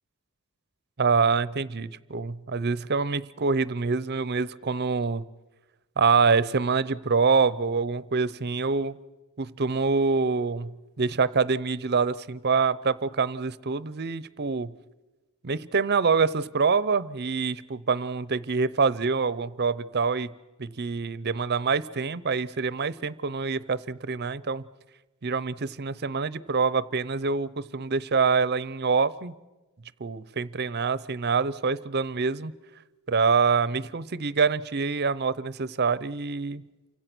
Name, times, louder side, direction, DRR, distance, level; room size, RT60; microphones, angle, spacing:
voice 1, 1.0-5.2 6.0-9.0 9.4-10.7 11.0-14.7 15.4-20.3 20.6-24.6 25.2-29.3 30.0-32.5 33.1-36.7, right 5 dB, 50° right, 18 dB, 0.7 m, -25 dB
29.0 x 25.0 x 6.1 m, 1.1 s
head